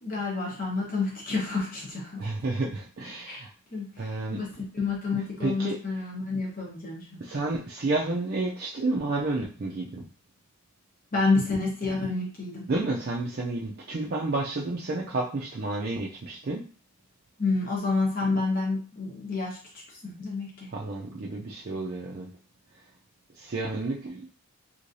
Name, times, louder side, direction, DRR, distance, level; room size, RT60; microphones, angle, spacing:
voice 1, 0.0-2.3 3.3-3.4 3.7-3.9 4.3-7.2 11.1-12.7 17.4-19.6 20.0-20.7, left 3 dB, 40° left, -3 dB, 1.0 m, -29 dB
voice 2, 2.2-3.5 4.0-4.4 5.4-5.8 7.2-10.0 12.7-16.7 20.7-22.3 23.4-24.3, right 2 dB, 45° right, -3 dB, 0.4 m, -30 dB
3.1 x 2.8 x 2.6 m, 0.38 s
head